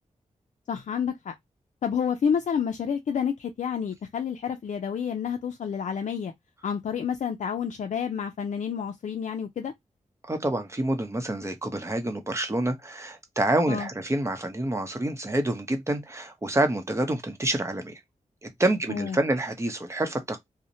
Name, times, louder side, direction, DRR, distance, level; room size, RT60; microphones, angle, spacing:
voice 1, 0.7-1.3 1.8-6.3 6.6-9.7 13.7-13.9 18.9-19.2, left 7 dB, 70° left, 0.4 m, -29 dB
voice 2, 10.2-18.0 18.4-20.4, right 1 dB, 20° right, 0.7 m, -27 dB
2.7 x 2.0 x 2.6 m
wide cardioid pair, 75°, 13 cm